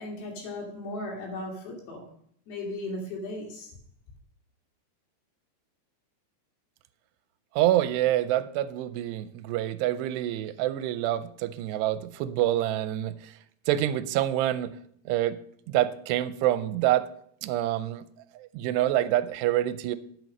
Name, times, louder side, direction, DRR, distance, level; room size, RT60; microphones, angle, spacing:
voice 1, 0.0-2.1 2.5-3.7, left 2 dB, 80° left, -1 dB, 4.7 m, -36 dB
voice 2, 7.6-13.3 13.7-14.7 15.1-15.4 15.7-17.1 17.4-18.0 18.4-20.0, right 13 dB, 85° right, 13 dB, 2.7 m, -26 dB
9.2 x 8.1 x 5.4 m, 0.64 s
omnidirectional pair, 4.8 m